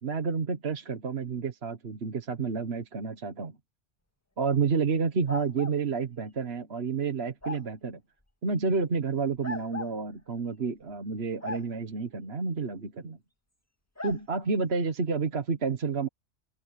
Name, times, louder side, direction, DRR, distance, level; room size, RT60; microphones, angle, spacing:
voice 1, 0.0-3.5 4.4-8.0 8.4-13.2 14.0-16.1, right 5 dB, 65° right, 1.6 m, -30 dB
sound 1, 5.3-5.8 7.4-7.7 9.4-10.0 11.4-11.7 14.0-14.2, left 2 dB, 15° left, 1.9 m, -37 dB
open air
omnidirectional pair, 1.2 m